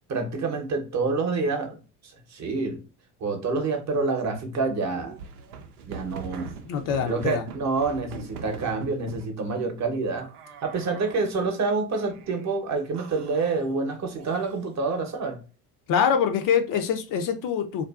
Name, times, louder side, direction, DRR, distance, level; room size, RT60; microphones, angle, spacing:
voice 1, 0.1-1.8 2.3-2.8 3.2-5.1 5.9-6.5 7.1-10.3 10.6-15.4, right 4 dB, 40° right, 0.8 m, -27 dB
sound 1, 4.9-9.3 10.2-11.5 11.9-12.5 12.9-14.8, right 6 dB, 85° right, 0.6 m, -42 dB
voice 2, 6.7-7.5 15.9-17.8, left 7 dB, 50° left, 0.5 m, -24 dB
2.4 x 2.4 x 2.3 m
hypercardioid pair, 80°, 44 cm